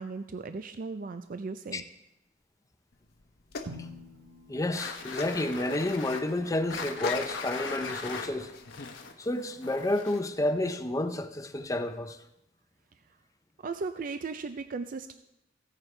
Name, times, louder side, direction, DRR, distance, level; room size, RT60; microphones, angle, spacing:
voice 1, 0.0-1.8 13.6-15.1, right 4 dB, 45° right, 0.4 m, -36 dB
sound 1, 2.9-9.0, left 3 dB, 55° left, 0.8 m, -43 dB
Drum, 3.7-5.7, equal, 75° right, 0.8 m, -47 dB
voice 2, 4.5-8.5 9.2-12.2, left 1 dB, 20° left, 0.6 m, -30 dB
sound 2, 4.7-10.4, left 4 dB, 90° left, 1.2 m, -39 dB
15.5 x 9.2 x 3.3 m
head